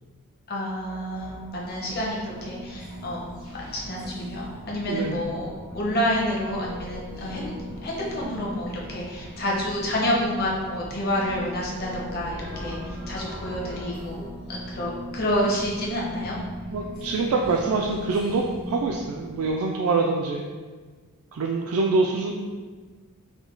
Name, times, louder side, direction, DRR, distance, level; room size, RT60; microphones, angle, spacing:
voice 1, 0.5-3.2 3.5-7.5 7.8-16.4, equal, 45° left, -4 dB, 0.9 m, -29 dB
sound 1, 0.7-19.5, equal, 70° left, 1.3 m, -39 dB
voice 2, 4.9-5.2 16.7-20.4 21.3-22.3, right 3 dB, 70° right, 0 dB, 0.3 m, -25 dB
4.9 x 2.2 x 3.8 m, 1.5 s
head